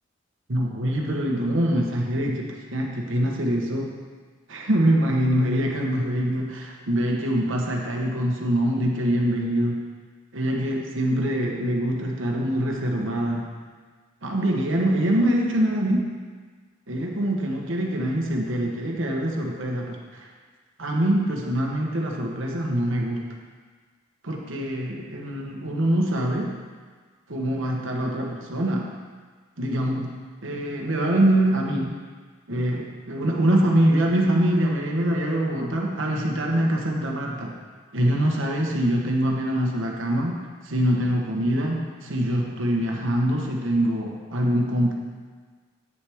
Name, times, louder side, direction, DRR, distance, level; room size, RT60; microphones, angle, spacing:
voice 1, 0.5-3.9 4.5-9.8 10.3-13.5 14.2-16.1 16.9-20.2 20.8-23.2 24.2-26.5 27.3-28.9 29.6-30.1 30.4-32.0 32.5-37.5 37.9-40.4 40.6-44.9, right 1 dB, 70° right, 0 dB, 1.2 m, -24 dB
8.5 x 7.5 x 3.6 m, 1.5 s
head